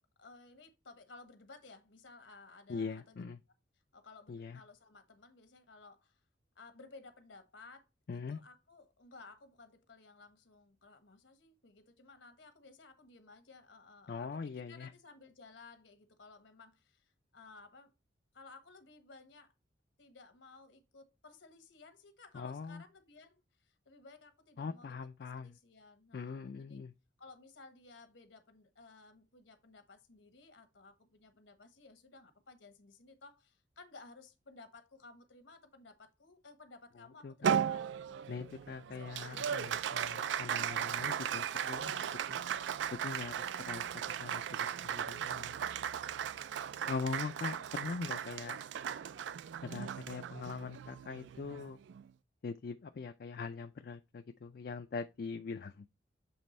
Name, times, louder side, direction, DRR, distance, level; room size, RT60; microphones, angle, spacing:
voice 1, 0.0-3.2 3.9-6.2 6.5-17.9 18.3-19.5 20.0-26.8 27.2-38.5 38.9-39.7 47.6-47.7, left 3 dB, 75° left, 1.2 m, -57 dB
voice 2, 2.7-3.4 4.3-4.6 8.1-8.4 14.1-14.9 22.3-22.8 24.6-25.5 26.1-26.9 37.2-37.6 38.3-41.9 42.3-42.4 43.0-45.5 45.8-45.9 46.9-48.6 49.6-51.8 52.4-55.9, left 5 dB, 50° left, 0.4 m, -42 dB
Applause, 37.4-52.1, right 8 dB, 70° right, 0.3 m, -37 dB
7.2 x 3.4 x 4.1 m
head